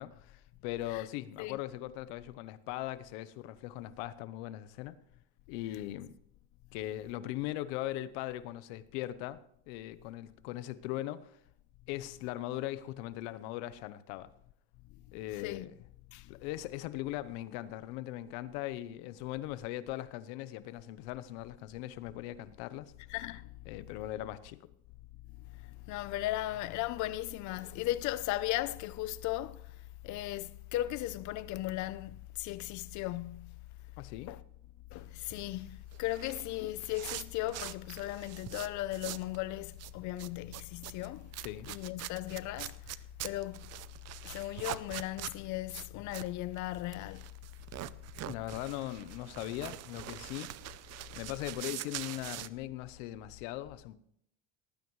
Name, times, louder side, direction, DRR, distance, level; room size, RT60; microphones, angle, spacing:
voice 1, 0.0-5.0 5.5-6.1 6.7-9.4 9.7-11.4 11.9-14.3 15.1-15.7 16.3-22.9 23.7-24.6 34.0-34.3 41.4-41.7 48.2-50.5 51.2-54.0, left 14 dB, 80° left, 0.9 m, -39 dB
voice 2, 23.1-23.5 25.9-29.6 30.0-33.6 34.3-34.4 34.9-41.3 41.7-42.8 43.2-43.6 44.2-47.3, left 15 dB, 55° left, 0.7 m, -37 dB
sound 1, 35.1-39.4 39.6-52.5, right 14 dB, 50° right, 0.7 m, -44 dB
18.5 x 14.5 x 3.2 m
supercardioid pair, 120°, 34 cm